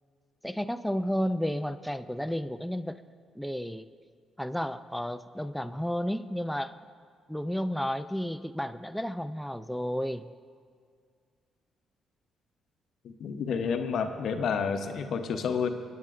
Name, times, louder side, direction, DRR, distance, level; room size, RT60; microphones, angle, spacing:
voice 1, 0.4-3.0 3.4-3.9 4.4-6.8 7.3-10.3, equal, ahead, 9 dB, 0.4 m, -32 dB
voice 2, 13.0-15.7, left 6 dB, 65° left, 7 dB, 0.8 m, -30 dB
19.5 x 9.3 x 2.5 m, 2.1 s
hypercardioid pair, 55°, 0 cm